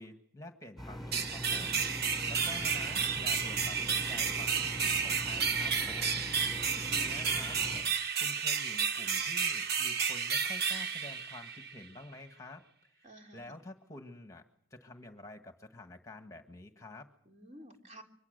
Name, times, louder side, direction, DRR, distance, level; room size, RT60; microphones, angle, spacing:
voice 1, 0.0-1.8 2.3-6.2 6.9-7.6 8.2-13.1 13.3-14.4 14.7-17.1, left 2 dB, 15° left, 6 dB, 1.7 m, -49 dB
sound 1, 0.8-7.8, equal, ahead, 5.9 m, -42 dB
sound 2, 1.1-11.8, right 6 dB, 50° right, 1.2 m, -32 dB
voice 2, 6.7-7.1 10.4-10.5 13.0-13.5 17.3-18.0, right 1 dB, 35° right, 2 dB, 3.5 m, -52 dB
24.5 x 22.0 x 6.7 m, 0.63 s
head